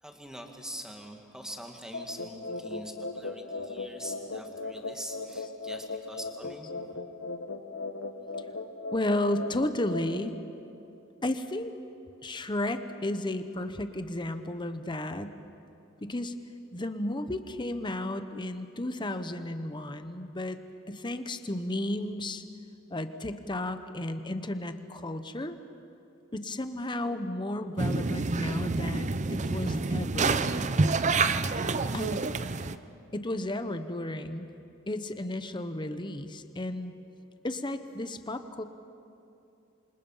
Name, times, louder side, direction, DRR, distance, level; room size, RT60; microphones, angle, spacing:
voice 1, 0.0-6.7, equal, 5° right, 2 dB, 2.0 m, -44 dB
sound 1, 1.9-10.2, left 3 dB, 85° left, 1.5 m, -38 dB
voice 2, 8.9-10.3 11.2-11.7 12.2-15.3 16.0-16.3 16.7-20.6 20.9-22.4 22.9-25.6 26.3-30.5 31.9-32.3 33.1-34.5 34.9-36.9 37.4-38.6, left 1 dB, 25° left, 9 dB, 1.0 m, -33 dB
sound 2, 27.8-32.8, right 3 dB, 35° right, 0.6 m, -28 dB
28.0 x 25.5 x 5.7 m, 2.7 s
head